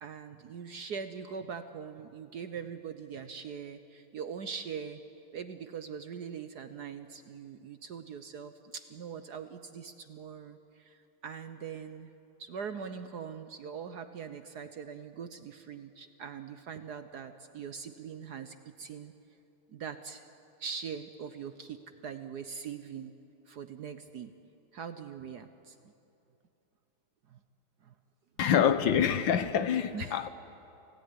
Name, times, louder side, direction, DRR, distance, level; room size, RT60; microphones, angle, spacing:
voice 1, 0.0-5.0 5.3-12.1 12.4-19.1 19.7-20.3 20.6-23.1 23.5-24.3 24.7-25.9 27.3-27.4 27.8-27.9 29.9-30.3, right 6 dB, 60° right, 1.2 m, -42 dB
voice 2, 28.4-30.3, left 8 dB, 65° left, 1.5 m, -26 dB
29.0 x 18.0 x 9.8 m
omnidirectional pair, 2.4 m